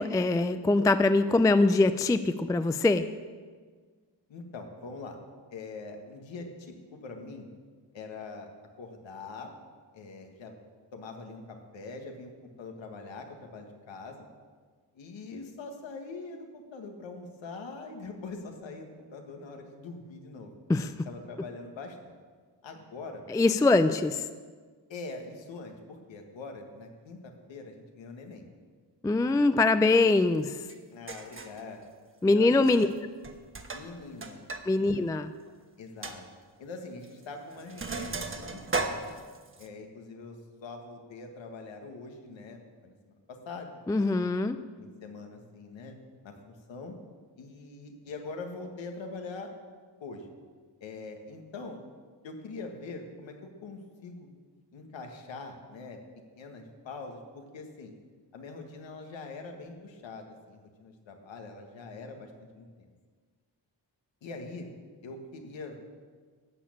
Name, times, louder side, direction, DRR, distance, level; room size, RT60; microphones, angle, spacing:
voice 1, 0.0-3.1 20.7-20.9 23.3-24.3 29.0-30.5 32.2-32.9 34.7-35.3 43.9-44.6, left 3 dB, 10° left, 11 dB, 0.3 m, -23 dB
voice 2, 4.3-5.2 5.5-7.5 7.9-8.5 8.8-9.5 9.9-10.6 10.9-14.3 14.9-20.5 21.1-22.2 22.6-23.3 24.9-28.5 29.2-29.4 29.8-30.1 30.9-31.8 32.2-32.7 33.7-34.9 35.8-36.2 36.6-39.2 39.6-44.3 44.8-46.0 46.2-47.0 47.4-49.5 50.0-50.3 50.8-51.9 52.2-54.3 54.7-56.0 56.4-57.9 58.3-62.9 64.2-64.7 65.0-65.8, left 3 dB, 90° left, 3 dB, 1.8 m, -43 dB
Sink (filling or washing), 30.7-30.8 31.1-31.6 32.6-33.0 33.2-34.6 34.9-35.0 35.5-35.6 36.0-36.2 37.0-37.2 37.5-39.7, right 3 dB, 30° right, 1.2 m, -36 dB
13.0 x 6.5 x 8.6 m, 1.5 s
cardioid pair, 100°, 44 cm